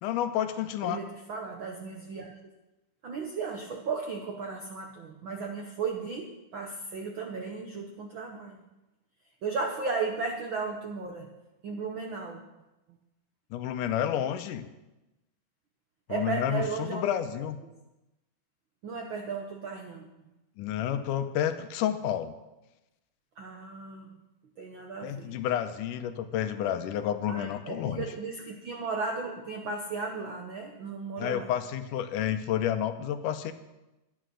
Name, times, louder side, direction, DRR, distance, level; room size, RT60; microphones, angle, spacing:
voice 1, 0.0-1.0 13.5-14.7 16.1-17.6 20.6-22.3 25.0-28.1 31.2-33.5, left 10 dB, 85° left, 9 dB, 2.3 m, -30 dB
voice 2, 0.8-2.3 3.0-8.6 9.4-11.3 11.6-12.4 16.1-17.7 18.8-20.1 23.4-24.2 24.6-25.4 27.3-31.5, right 4 dB, 75° right, 2 dB, 1.1 m, -35 dB
11.5 x 9.7 x 6.3 m, 1.0 s
omnidirectional pair, 3.6 m